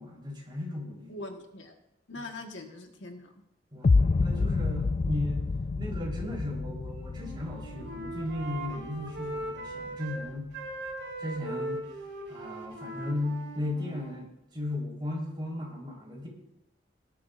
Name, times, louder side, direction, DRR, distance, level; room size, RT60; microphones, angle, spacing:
voice 1, 0.0-1.1 2.2-2.3 3.7-3.9 4.2-5.5 5.8-10.5 11.2-11.9 12.3-16.3, left 1 dB, 25° right, -3 dB, 4.2 m, -35 dB
voice 2, 1.1-1.8 2.1-3.4, left 2 dB, 80° left, 3 dB, 1.5 m, -42 dB
sound 1, 3.8-9.8, left 3 dB, 35° left, 0.3 m, -29 dB
Wind instrument woodwind instrument, 7.1-10.2 10.5-14.3, right 2 dB, 65° right, 3.6 m, -39 dB
18.5 x 11.5 x 2.6 m, 0.85 s
head